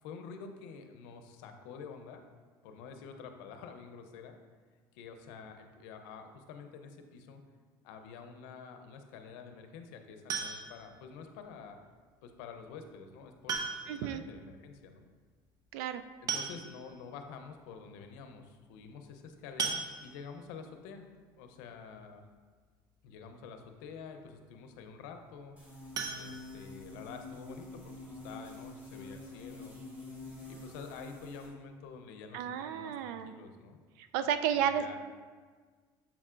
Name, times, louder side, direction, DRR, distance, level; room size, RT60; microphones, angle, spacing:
voice 1, 0.0-2.2 2.6-4.4 4.9-7.4 7.8-11.8 12.2-15.0 16.2-21.1 21.4-22.2 23.0-25.6 26.1-29.8 30.5-33.8 34.5-35.0, left 5 dB, 85° left, 6 dB, 0.6 m, -48 dB
sound 1, 10.3-10.9 12.4-12.5 13.5-14.1 14.4-14.5 14.8-14.9 15.9-16.0 16.3-17.0 17.6-17.7 18.0-18.2 19.6-20.4 25.9-27.1 27.5-27.6 28.0-28.1 28.5-28.6, right 5 dB, 40° right, 0.7 m, -37 dB
voice 2, 13.9-14.2 15.7-16.0 32.3-33.3 34.0-35.0, right 9 dB, 85° right, 10 dB, 0.4 m, -32 dB
sound 2, 25.6-31.5, left 2 dB, 15° right, 1.8 m, -47 dB
7.1 x 5.4 x 2.5 m, 1.5 s
supercardioid pair, 110°, 10 cm